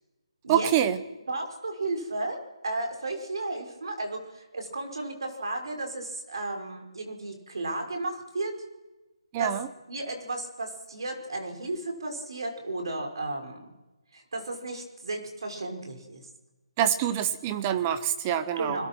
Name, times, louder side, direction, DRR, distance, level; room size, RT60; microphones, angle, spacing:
voice 1, 0.5-1.0 9.3-9.7 16.8-18.9, right 10 dB, 10° right, 12 dB, 0.8 m, -26 dB
voice 2, 1.3-8.6 9.4-9.5 9.9-13.7 14.1-16.3 18.6-18.9, right 2 dB, 50° right, 4 dB, 5.4 m, -34 dB
29.0 x 21.5 x 6.1 m, 1.1 s
hypercardioid pair, 180°, 3 cm